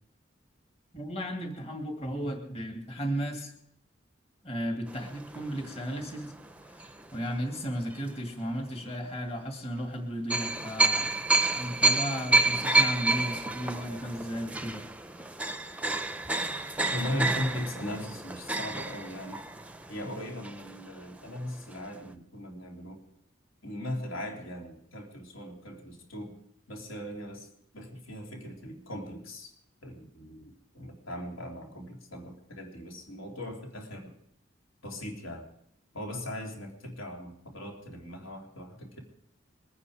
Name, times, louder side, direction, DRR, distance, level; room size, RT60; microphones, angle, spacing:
voice 1, 0.9-3.5 4.4-6.3 6.7-14.8, equal, 30° left, 2 dB, 2.3 m, -35 dB
sound 1, 4.9-7.4 7.9-8.1 10.3-21.1 21.3-21.4 21.7-21.9, right 2 dB, 5° right, 0.5 m, -29 dB
voice 2, 16.9-19.4 19.9-23.0 23.6-26.4 26.7-27.5 27.7-29.5 29.8-34.1 34.8-35.5 35.9-39.0, left 1 dB, 85° left, 1 dB, 3.4 m, -38 dB
22.5 x 9.8 x 5.0 m, 0.70 s
head